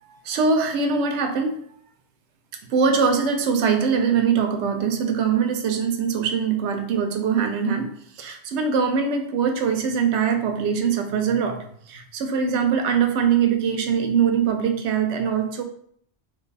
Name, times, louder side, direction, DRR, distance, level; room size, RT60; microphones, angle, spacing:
voice 1, 0.0-1.6 2.7-7.9 8.2-15.6, right 6 dB, 90° right, 6 dB, 0.9 m, -22 dB
2.9 x 2.3 x 3.9 m, 0.63 s
omnidirectional pair, 1.1 m